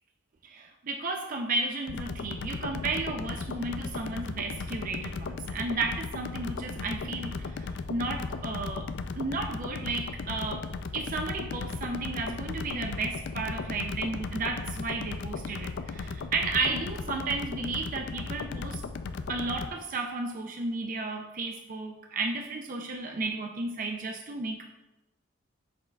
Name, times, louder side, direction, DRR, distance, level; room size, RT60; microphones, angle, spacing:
voice 1, 0.4-8.9 9.1-18.8 19.3-24.7, right 3 dB, 40° right, 3 dB, 0.4 m, -33 dB
sound 1, 1.9-19.7, left 4 dB, 55° left, 0.4 m, -36 dB
7.6 x 6.2 x 2.3 m, 1.0 s
head